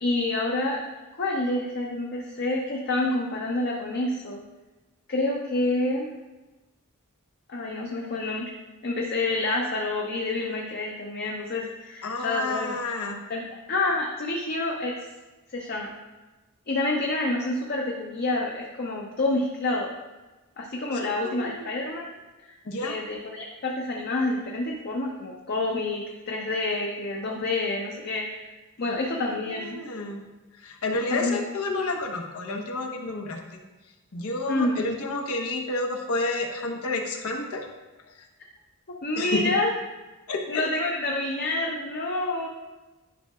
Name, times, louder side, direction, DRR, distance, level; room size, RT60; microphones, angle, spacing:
voice 1, 0.0-0.8 1.1-4.4 5.1-6.1 7.5-8.5 8.8-12.7 13.3-15.1 15.5-15.9 16.7-19.9 20.6-22.1 22.5-28.5 28.8-29.8 31.1-31.4 34.5-34.8 39.0-39.7 40.5-42.5, left 2 dB, 50° left, -2 dB, 0.7 m, -28 dB
voice 2, 12.0-13.2 20.9-21.1 21.4-21.7 22.6-22.9 29.2-30.2 30.6-33.6 34.1-37.6 39.2-39.5 40.3-40.6, left 2 dB, 85° left, 2 dB, 1.0 m, -30 dB
11.0 x 5.7 x 2.3 m, 1.1 s
head